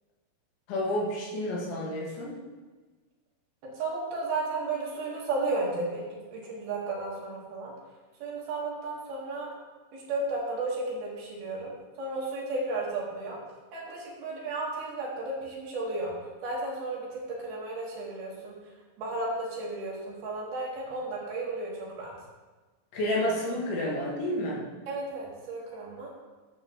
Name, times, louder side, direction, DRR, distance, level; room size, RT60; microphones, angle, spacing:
voice 1, 0.7-2.3 22.9-24.6, left 1 dB, 75° left, -3 dB, 3.9 m, -30 dB
voice 2, 3.6-6.0 6.3-7.7 8.2-9.5 9.9-11.7 12.0-13.4 13.7-16.1 16.4-18.6 19.0-22.1 24.9-26.1, right 2 dB, 65° right, -4 dB, 3.0 m, -33 dB
12.0 x 8.1 x 3.0 m, 1.3 s
omnidirectional pair, 5.4 m